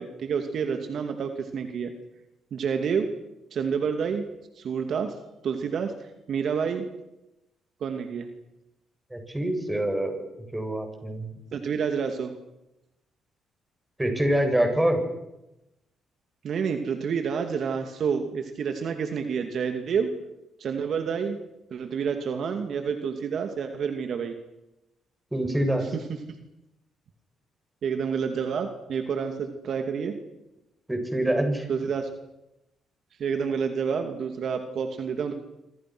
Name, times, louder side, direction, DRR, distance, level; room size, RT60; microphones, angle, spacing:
voice 1, 0.0-1.9 2.5-3.1 3.5-4.2 4.5-5.2 5.4-5.9 6.3-6.9 7.8-8.3 11.5-12.3 16.4-20.1 20.6-21.4 21.7-24.4 25.9-26.0 27.8-30.2 31.7-32.1 33.2-35.3, right 6 dB, 60° right, 6 dB, 2.6 m, -28 dB
voice 2, 9.1-10.3 10.5-11.4 14.0-15.0 25.3-25.8 30.9-31.7, right 1 dB, 10° right, 4 dB, 7.6 m, -25 dB
27.0 x 26.5 x 6.3 m, 0.91 s
cardioid pair, 90°, 0 cm